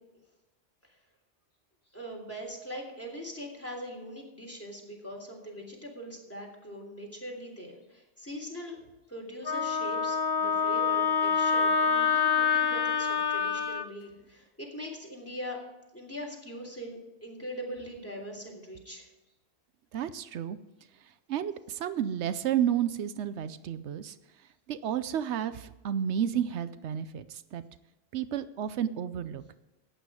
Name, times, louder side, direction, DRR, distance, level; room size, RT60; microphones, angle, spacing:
voice 1, 1.9-8.8 9.1-15.6 15.9-19.1, equal, 10° left, 0 dB, 3.3 m, -41 dB
Wind instrument woodwind instrument, 9.5-13.9, left 6 dB, 35° left, 0.4 m, -26 dB
voice 2, 19.9-20.6 21.3-24.1 24.7-27.6 28.1-29.4, right 9 dB, 85° right, 13 dB, 0.9 m, -31 dB
14.0 x 9.4 x 4.9 m, 1.0 s
omnidirectional pair, 1.1 m